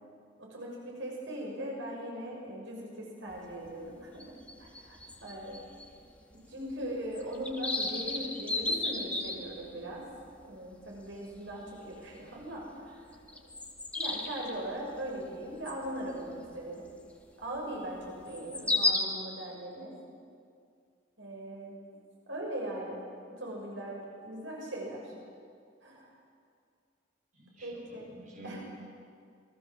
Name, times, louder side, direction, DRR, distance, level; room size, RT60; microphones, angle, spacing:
voice 1, 0.4-4.2 4.6-5.6 6.5-10.0 10.4-13.1 14.0-16.8 17.4-19.9 21.2-21.8 22.3-23.0 23.4-25.1 25.8-26.1 27.6-28.1 28.4-28.6, right 1 dB, 75° right, -2 dB, 6.6 m, -40 dB
sound 1, 3.3-3.4 3.7-3.8 4.2-5.9 6.2-6.3 6.7-6.8 7.1-9.8 10.4-10.5 10.9-11.1 11.5-11.7 12.6-12.7 13.1-14.5 15.7-15.9 16.3-16.4 18.3-19.0, left 2 dB, 5° left, 2.1 m, -32 dB
voice 2, 27.3-28.6, right 1 dB, 40° right, -3 dB, 6.5 m, -49 dB
27.5 x 22.0 x 7.4 m, 2.3 s
head